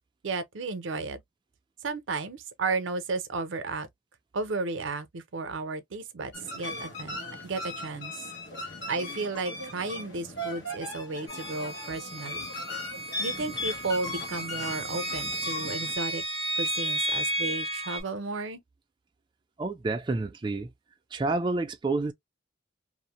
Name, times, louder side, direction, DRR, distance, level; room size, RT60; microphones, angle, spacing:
voice 1, 0.2-1.2 1.8-3.9 4.3-7.2 7.4-8.2 8.9-12.5 13.2-16.2 16.6-18.6, right 3 dB, 90° right, 0.6 m, -33 dB
sound 1, 6.3-16.0, left 2 dB, 70° left, 1.1 m, -38 dB
sound 2, 11.3-18.0, right 1 dB, 20° left, 0.9 m, -33 dB
voice 2, 19.6-20.7 21.1-22.1, right 3 dB, 25° right, 0.3 m, -29 dB
2.6 x 2.0 x 2.9 m
head